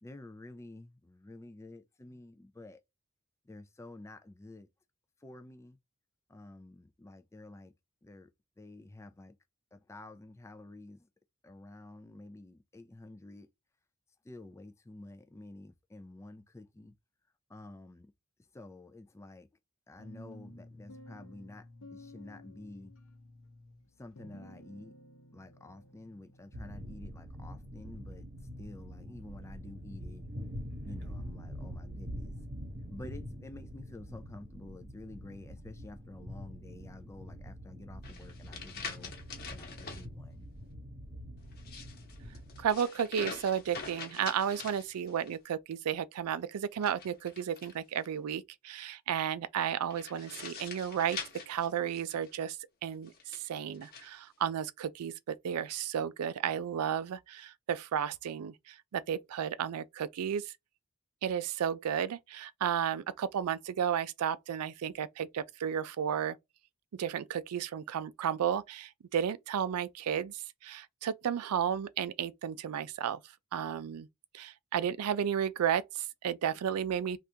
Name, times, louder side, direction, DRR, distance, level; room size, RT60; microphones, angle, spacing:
voice 1, 0.0-2.8 3.4-4.7 5.2-5.8 6.3-7.7 8.0-8.3 8.6-9.3 9.7-11.1 11.4-13.5 14.2-17.0 17.5-18.1 18.5-19.5 19.9-22.9 24.0-24.9 25.3-28.3 28.6-30.3 30.8-32.5 32.9-39.1 39.5-40.5, left 2 dB, 10° left, 0.3 m, -50 dB
sound 1, 20.0-27.1, left 1 dB, 60° left, 0.8 m, -53 dB
sound 2, 26.5-42.7, equal, 50° right, 1.0 m, -45 dB
sound 3, 38.0-40.0 41.5-45.4 46.7-48.1 49.9-52.3 53.1-54.1, left 5 dB, 45° left, 1.2 m, -45 dB
voice 2, 42.6-51.2 51.5-52.6 52.8-60.5 61.2-66.4 66.9-73.2 73.5-74.1 74.3-77.2, right 8 dB, 80° right, 0.4 m, -33 dB
3.4 x 2.4 x 2.8 m
head